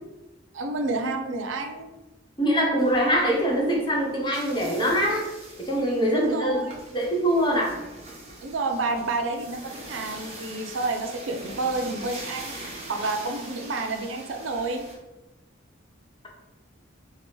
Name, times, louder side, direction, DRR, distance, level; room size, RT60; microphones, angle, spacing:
voice 1, 0.5-1.9 6.1-6.8 8.4-14.8, right 3 dB, 70° right, 5 dB, 0.5 m, -30 dB
voice 2, 2.4-5.2 5.6-6.6 6.9-7.7, equal, 25° left, -1 dB, 0.8 m, -23 dB
sound 1, 2.8-14.9, right 2 dB, 30° right, 0.9 m, -42 dB
3.0 x 2.8 x 4.5 m, 1.0 s
head